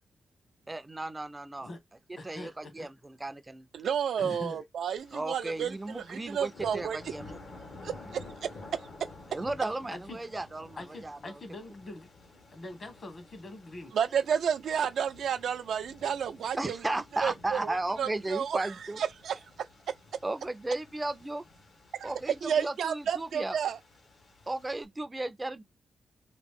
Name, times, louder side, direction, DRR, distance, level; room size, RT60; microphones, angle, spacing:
voice 1, 0.7-1.7 2.2-3.7 5.1-7.3 8.1-8.2 9.3-11.4 16.6-19.0 20.2-21.4 22.0-23.6 24.5-25.6, right 2 dB, 20° right, 0.4 m, -35 dB
voice 2, 2.2-2.9 4.2-4.6 9.9-10.2 10.8-12.1 12.5-13.9, left 2 dB, 50° left, 1.2 m, -43 dB
voice 3, 3.7-7.0 7.8-8.5 13.9-16.9 17.2-18.7 19.0-19.4 22.0-22.1 22.4-23.8, right 8 dB, 90° right, 0.4 m, -31 dB
sound 1, 5.0-24.8, left 2 dB, 75° left, 1.3 m, -52 dB
2.9 x 2.6 x 3.5 m
cardioid pair, 105°, 0 cm